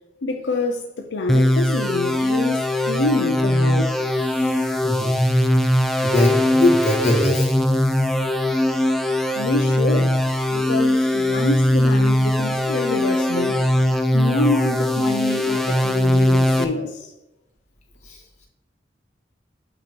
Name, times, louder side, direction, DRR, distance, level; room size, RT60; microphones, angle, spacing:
voice 1, 0.2-4.7 9.4-10.2 10.5-13.8 14.1-17.1, left 3 dB, 80° left, 0.5 m, -26 dB
sound 1, 1.3-16.6, left 1 dB, ahead, 0.4 m, -20 dB
voice 2, 6.1-7.6 18.0-18.2, left 1 dB, 40° left, 1.6 m, -20 dB
8.8 x 2.9 x 4.4 m
head